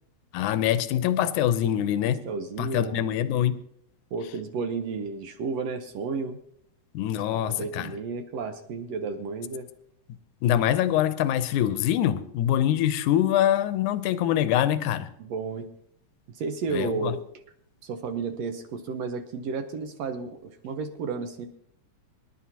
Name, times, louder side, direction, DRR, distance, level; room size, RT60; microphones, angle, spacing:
voice 1, 0.3-2.2 2.6-3.6 6.9-7.9 10.4-15.1 16.7-17.1, left 11 dB, 85° left, 12 dB, 2.1 m, -24 dB
voice 2, 2.3-3.0 4.1-6.4 7.3-9.7 15.2-15.7 16.3-17.2 17.8-21.5, right 4 dB, 70° right, 7 dB, 1.8 m, -32 dB
24.5 x 11.0 x 2.8 m, 0.70 s
omnidirectional pair, 3.5 m